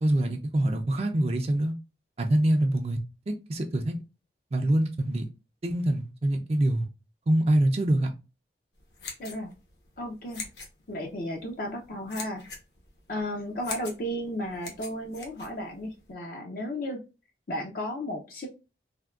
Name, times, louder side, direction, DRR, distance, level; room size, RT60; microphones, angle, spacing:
voice 1, 0.0-1.7 2.2-3.0 3.3-3.9 4.5-5.2 5.6-6.9 7.3-8.1, right 1 dB, 35° right, 0.4 m, -25 dB
sound 1, 8.8-16.1, left 4 dB, 65° left, 0.9 m, -43 dB
voice 2, 9.2-9.5 10.0-10.4 10.9-12.4 13.1-17.0 17.5-18.5, equal, 50° left, 0.5 m, -34 dB
3.4 x 2.2 x 2.3 m
head